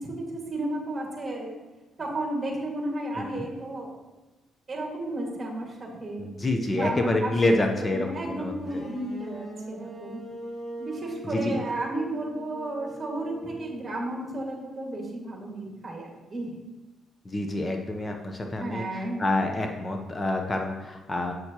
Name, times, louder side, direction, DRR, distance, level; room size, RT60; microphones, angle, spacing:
voice 1, 0.0-1.6 2.0-4.0 4.7-6.3 6.7-10.2 10.8-16.6 18.6-19.3, right 1 dB, 30° right, -1 dB, 1.9 m, -33 dB
voice 2, 3.1-3.5 6.2-8.8 11.2-11.6 17.2-21.3, left 2 dB, 25° left, 4 dB, 0.7 m, -28 dB
sound 1, 8.6-14.5, right 1 dB, 5° left, 1.3 m, -42 dB
7.9 x 6.3 x 2.9 m, 1.1 s
cardioid pair, 90°, 0 cm